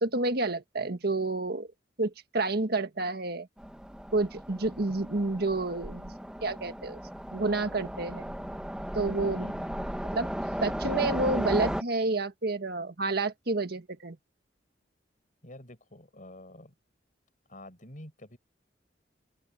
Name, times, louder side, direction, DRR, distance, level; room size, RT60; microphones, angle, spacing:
voice 1, 0.0-1.7 2.0-3.5 4.1-6.1 6.4-7.0 7.3-8.3 8.9-9.5 10.1-10.3 10.6-14.2, right 3 dB, 60° right, 1.6 m, -29 dB
Train, 3.6-11.8, equal, 5° right, 1.6 m, -35 dB
voice 2, 9.3-9.9 15.4-16.7 17.5-18.4, left 1 dB, 45° left, 5.2 m, -48 dB
open air
head